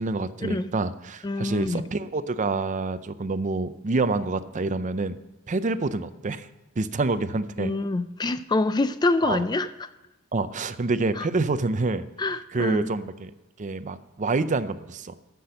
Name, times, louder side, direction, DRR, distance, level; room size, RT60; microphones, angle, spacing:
voice 1, 0.0-5.2 5.5-6.5 6.8-7.7 9.2-9.4 10.3-12.1 12.5-13.3 13.6-15.1, right 3 dB, 35° right, 0.5 m, -27 dB
voice 2, 1.2-1.8 7.6-9.9 11.2-11.3 12.2-12.9, left 2 dB, 20° left, 0.4 m, -26 dB
14.0 x 6.0 x 6.4 m
head